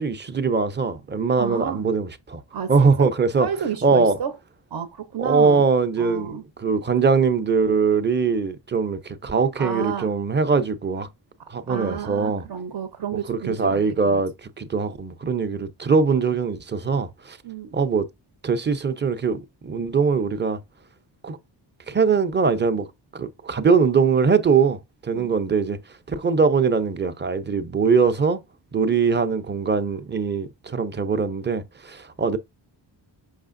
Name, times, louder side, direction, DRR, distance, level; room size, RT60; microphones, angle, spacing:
voice 1, 0.0-2.4 2.7-3.5 3.8-4.2 5.2-6.3 6.6-11.1 11.5-12.4 13.3-17.4 17.7-18.1 18.4-20.6 21.2-21.4 21.9-22.9 23.1-25.8 26.1-28.4 28.7-32.4, right 5 dB, 25° right, 0.6 m, -22 dB
voice 2, 1.4-1.8 2.5-3.1 3.4-4.4 4.7-5.6 6.0-6.4 9.6-10.1 11.7-14.2 17.4-17.7 25.1-25.3 28.8-28.9, right 8 dB, 60° right, 0.8 m, -31 dB
6.5 x 5.6 x 2.6 m
wide cardioid pair, 115°, 45 cm